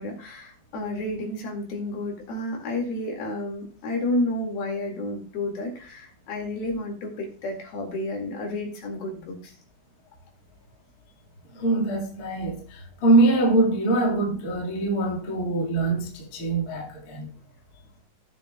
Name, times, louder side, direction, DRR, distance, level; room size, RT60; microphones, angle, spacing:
voice 1, 0.0-9.5, left 1 dB, 70° left, 4.0 m, -31 dB
voice 2, 11.5-17.3, right 2 dB, 35° left, 1.5 m, -23 dB
17.5 x 6.6 x 2.3 m
omnidirectional pair, 4.6 m